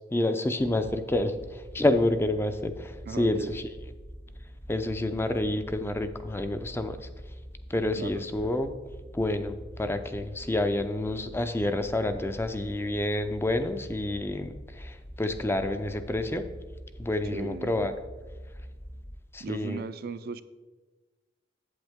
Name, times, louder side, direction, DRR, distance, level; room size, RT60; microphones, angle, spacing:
voice 1, 0.0-3.6 4.7-7.1 7.7-8.7 9.1-16.5 17.0-17.9 19.3-19.9, left 1 dB, 10° left, 9 dB, 0.4 m, -28 dB
sound 1, 0.6-19.1, equal, 70° left, 2.9 m, -45 dB
voice 2, 3.1-3.6 8.0-8.3 17.3-17.8 19.4-20.4, right 4 dB, 55° right, 14 dB, 0.4 m, -37 dB
8.2 x 8.0 x 3.6 m, 1.3 s
head